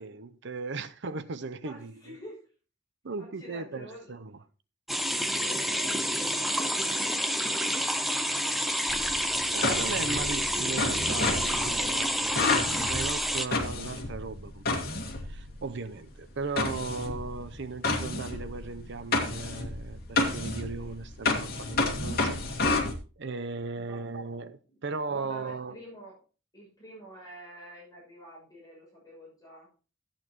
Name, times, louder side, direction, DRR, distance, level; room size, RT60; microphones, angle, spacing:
voice 1, 0.0-2.2 3.0-4.4 9.5-15.0 15.3-22.8 23.2-25.8, right 4 dB, 60° right, 0.7 m, -37 dB
voice 2, 1.5-2.5 3.2-4.2 5.4-8.8 23.7-24.0 24.7-24.8 25.0-26.2 26.5-29.7, equal, 20° left, 6.7 m, -48 dB
sound 1, 4.9-13.5, equal, ahead, 0.7 m, -29 dB
sound 2, 8.9-15.7 16.6-22.9, left 3 dB, 50° left, 2.2 m, -31 dB
15.0 x 8.9 x 3.0 m
head